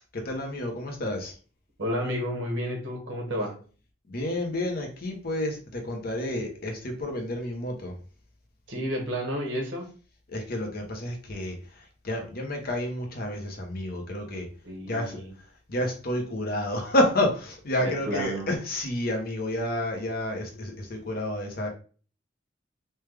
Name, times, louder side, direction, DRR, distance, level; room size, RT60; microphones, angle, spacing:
voice 1, 0.1-1.3 4.1-7.9 10.3-14.5 14.9-15.2 15.7-21.7, left 1 dB, 55° left, 2 dB, 0.8 m, -30 dB
voice 2, 1.8-3.5 8.7-9.8 14.6-15.3 17.8-18.5, equal, 90° right, 0 dB, 1.3 m, -31 dB
3.3 x 2.3 x 3.3 m, 0.39 s
head